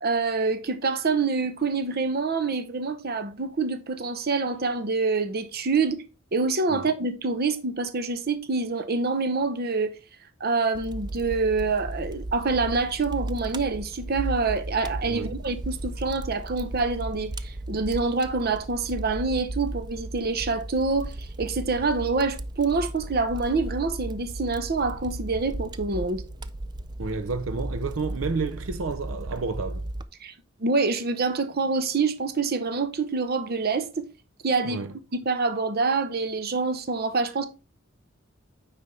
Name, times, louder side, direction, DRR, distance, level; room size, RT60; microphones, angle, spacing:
voice 1, 0.0-6.0 6.3-9.9 10.4-26.2 30.2-30.3 30.6-34.1 34.4-34.9 35.1-37.5, right 4 dB, 50° right, 0.8 m, -26 dB
Fire, 10.7-30.0, right 1 dB, 20° right, 0.4 m, -35 dB
voice 2, 27.0-29.9 34.6-35.0, right 4 dB, 80° right, 0.7 m, -30 dB
9.2 x 4.2 x 3.3 m
head